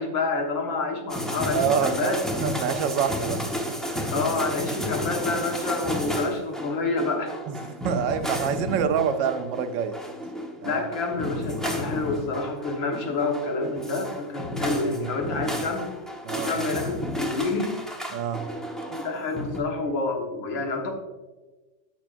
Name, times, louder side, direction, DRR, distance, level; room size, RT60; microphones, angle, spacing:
voice 1, 0.0-2.2 4.1-7.4 10.6-15.9 16.4-17.8 18.9-20.9, left 3 dB, 90° left, 2 dB, 2.1 m, -28 dB
sound 1, 1.1-19.6, equal, ahead, 0.3 m, -32 dB
voice 2, 1.5-3.8 7.5-7.6 7.8-10.0 10.6-10.8 16.2-16.5 18.1-18.5, right 7 dB, 80° right, 9 dB, 1.4 m, -26 dB
11.5 x 6.9 x 2.5 m, 1.2 s
omnidirectional pair, 2.0 m